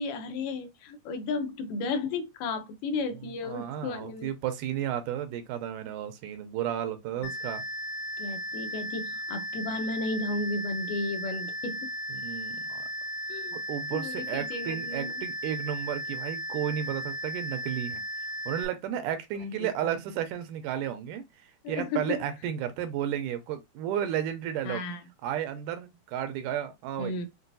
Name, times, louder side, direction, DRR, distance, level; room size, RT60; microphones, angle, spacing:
voice 1, 0.0-4.3 7.2-7.3 8.2-11.9 13.3-13.6 13.9-15.2 19.6-19.7 21.6-22.2 24.7-25.0 27.0-27.3, left 3 dB, 85° left, 2.3 m, -33 dB
voice 2, 3.1-7.6 12.1-12.8 13.5-18.0 18.5-21.2 21.7-24.8 25.2-27.2, right 10 dB, 85° right, 2.1 m, -33 dB
sound 1, 7.2-18.7, equal, 65° left, 2.0 m, -36 dB
6.0 x 2.2 x 2.7 m
omnidirectional pair, 3.7 m